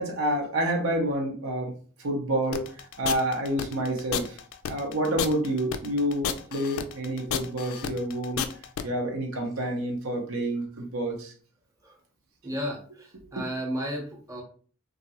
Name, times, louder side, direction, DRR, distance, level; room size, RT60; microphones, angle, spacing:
voice 1, 0.0-1.7 2.0-4.4 4.7-8.4 8.8-11.3 13.3-13.4, right 1 dB, 85° right, 2 dB, 0.7 m, -28 dB
sound 1, 2.5-8.8, left 8 dB, 70° left, 0.3 m, -31 dB
voice 2, 12.4-14.4, equal, 15° right, -1 dB, 0.8 m, -33 dB
3.0 x 2.4 x 2.8 m, 0.41 s
head